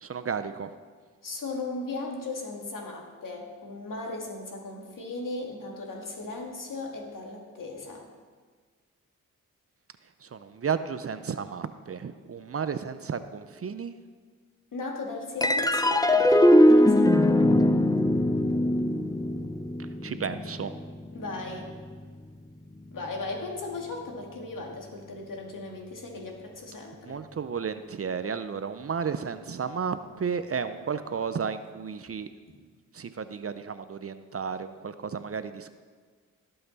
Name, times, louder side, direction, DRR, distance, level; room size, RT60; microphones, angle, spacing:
voice 1, 0.0-0.7 10.2-14.0 19.8-20.7 27.1-32.3 32.9-35.8, right 6 dB, 45° right, 11 dB, 0.6 m, -33 dB
voice 2, 1.2-8.1 14.7-17.1 21.1-21.7 22.9-27.2, left 3 dB, 70° left, 0 dB, 2.1 m, -37 dB
sound 1, 15.4-22.1, left 1 dB, 10° left, 0.6 m, -22 dB
17.0 x 5.8 x 4.1 m, 1.5 s
cardioid pair, 55°, 34 cm